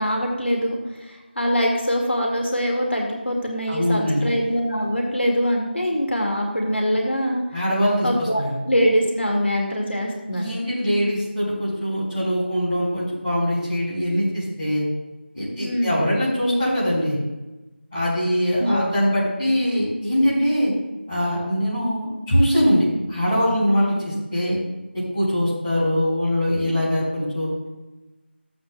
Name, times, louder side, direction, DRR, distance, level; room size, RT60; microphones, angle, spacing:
voice 1, 0.0-7.4 8.0-10.4 15.6-16.0 18.6-18.9, equal, 75° left, 0 dB, 2.1 m, -23 dB
voice 2, 3.7-4.2 7.5-8.5 10.3-14.9 15.3-17.2 17.9-20.7 21.1-24.6 24.9-27.5, equal, 10° left, -15 dB, 3.7 m, -22 dB
14.5 x 8.7 x 2.3 m, 1.1 s
figure-of-eight pair, 170°, 6 cm